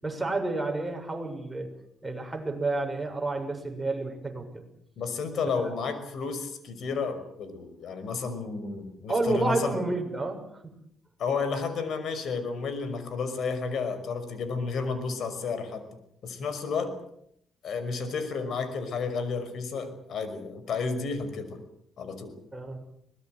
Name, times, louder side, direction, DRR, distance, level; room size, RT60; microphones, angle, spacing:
voice 1, 0.0-1.7 2.0-4.6 5.4-5.7 9.1-10.4 22.5-22.8, right 2 dB, 10° right, 2 dB, 7.0 m, -30 dB
voice 2, 5.0-9.8 11.2-15.8 16.2-16.9 17.6-21.6 22.0-22.4, left 5 dB, 65° left, 10 dB, 5.7 m, -32 dB
23.5 x 19.5 x 7.9 m, 0.73 s
cardioid pair, 90°, 0 cm